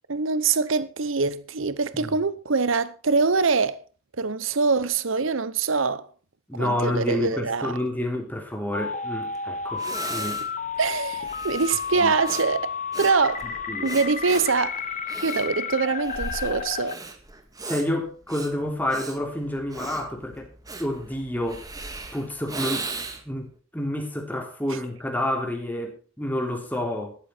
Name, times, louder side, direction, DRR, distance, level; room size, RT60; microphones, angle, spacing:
voice 1, 0.1-3.8 4.2-6.1 6.5-7.8 10.2-10.3 10.8-12.7 13.0-13.5 13.8-14.8 15.2-17.0 24.7-24.8, right 4 dB, 70° right, 0.9 m, -24 dB
voice 2, 6.5-10.4 12.0-12.1 13.4-14.0 17.6-20.5 20.8-21.7 22.1-22.9 23.2-27.2, left 1 dB, 10° left, 3.2 m, -29 dB
sound 1, 8.7-17.0, left 6 dB, 40° left, 1.2 m, -32 dB
Breathing, 9.3-9.4 9.8-23.4, right 3 dB, 20° right, 1.7 m, -37 dB
13.0 x 12.5 x 4.5 m
head